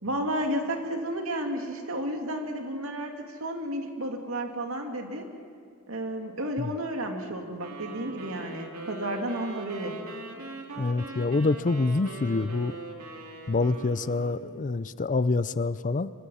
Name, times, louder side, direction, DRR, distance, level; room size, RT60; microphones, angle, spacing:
voice 1, 0.0-5.2 5.9-10.0, right 1 dB, 65° right, 3 dB, 2.7 m, -32 dB
sound 1, 7.6-14.6, right 3 dB, 90° right, 2.9 m, -42 dB
voice 2, 10.8-12.8 13.5-16.1, left 3 dB, 35° left, 15 dB, 0.5 m, -26 dB
25.5 x 25.0 x 5.7 m, 2.2 s
head